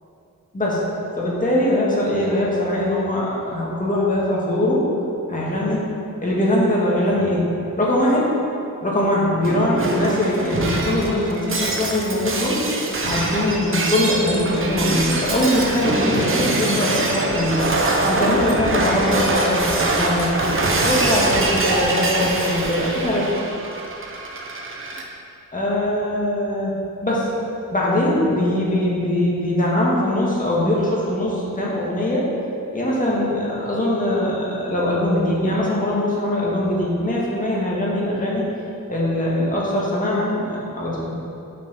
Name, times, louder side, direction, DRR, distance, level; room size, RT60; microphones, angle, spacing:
voice 1, 1.2-4.8 5.3-5.8 6.2-7.4 7.8-8.3 8.8-12.6 13.0-17.6 18.0-20.4 20.8-23.3 25.5-26.7 27.0-27.3 27.7-32.2 32.7-38.4 38.9-41.1, left 1 dB, 25° left, -5 dB, 2.0 m, -21 dB
Shatter, 9.4-25.0, right 2 dB, 40° right, 0.9 m, -23 dB
7.0 x 5.9 x 5.8 m, 2.7 s
wide cardioid pair, 125°, 34 cm